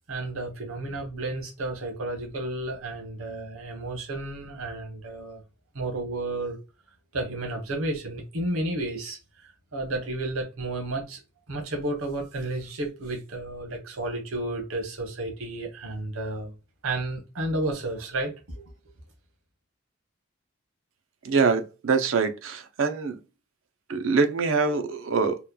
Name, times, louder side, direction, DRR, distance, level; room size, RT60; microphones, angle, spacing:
voice 1, 0.1-5.4 5.7-6.6 7.1-11.2 11.5-16.5 16.8-18.6, right 2 dB, 90° right, 1.0 m, -32 dB
voice 2, 21.2-23.2 23.9-25.4, right 4 dB, 70° right, 0.5 m, -24 dB
2.9 x 2.1 x 2.3 m
head